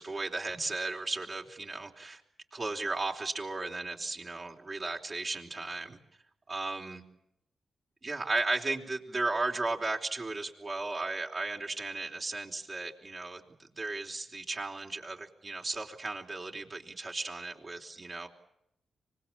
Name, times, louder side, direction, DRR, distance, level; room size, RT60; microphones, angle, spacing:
voice 1, 0.0-2.2 2.5-6.0 6.5-7.0 8.0-18.3, right 3 dB, 45° right, 2 dB, 4.1 m, -35 dB
25.0 x 20.0 x 8.8 m, 0.79 s
supercardioid pair, 45°, 0 cm